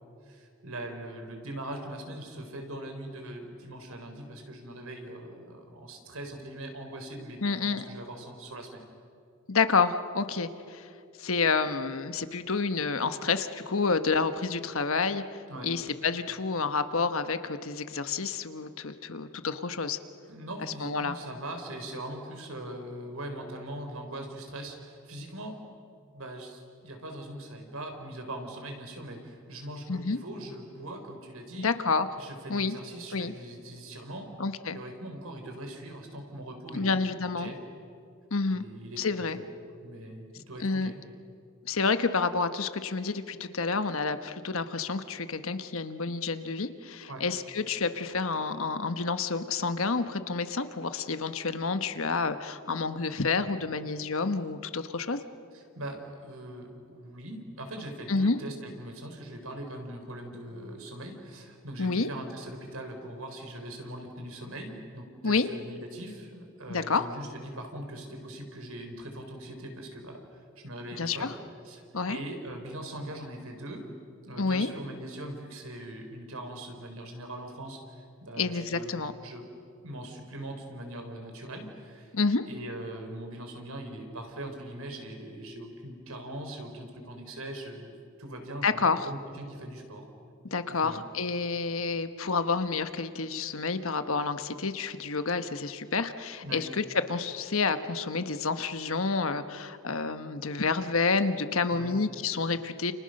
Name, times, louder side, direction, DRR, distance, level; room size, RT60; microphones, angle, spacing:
voice 1, 0.2-8.8 15.5-15.7 20.3-25.6 26.1-31.7 32.1-34.3 34.7-37.0 37.2-37.6 38.5-39.4 39.8-41.0 47.1-47.2 55.5-71.3 71.6-73.9 74.2-79.4 79.8-82.1 82.5-90.1 90.7-91.0 96.4-96.6 101.7-102.0, right 1 dB, 70° right, 4 dB, 4.3 m, -41 dB
voice 2, 7.4-7.8 9.5-10.9 11.2-15.2 15.6-20.0 20.6-21.2 29.9-30.2 31.6-32.1 32.5-32.8 33.1-33.3 34.4-34.8 36.7-37.5 38.3-38.7 39.0-39.4 40.6-40.9 41.6-55.2 58.1-58.4 61.8-62.1 65.2-65.5 66.7-67.0 71.0-71.3 71.9-72.2 74.4-74.7 78.4-79.1 82.1-82.4 88.6-89.1 90.5-102.9, left 4 dB, 65° left, 10 dB, 1.2 m, -29 dB
29.5 x 29.5 x 6.6 m, 2.5 s
head